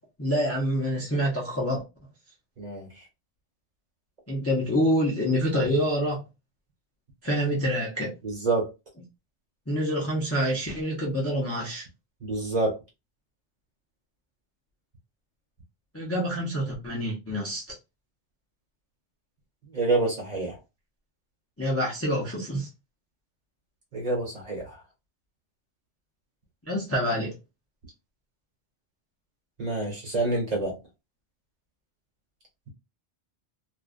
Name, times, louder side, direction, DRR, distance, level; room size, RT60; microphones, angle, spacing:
voice 1, 0.2-1.8 4.3-6.2 7.2-8.1 9.7-11.8 15.9-17.6 21.6-22.7 26.7-27.4, equal, 15° left, 0.5 m, -26 dB
voice 2, 2.6-2.9 8.2-8.7 12.2-12.8 19.7-20.6 23.9-24.8 29.6-30.7, right 2 dB, 40° right, 1.1 m, -27 dB
2.5 x 2.4 x 2.4 m
omnidirectional pair, 1.2 m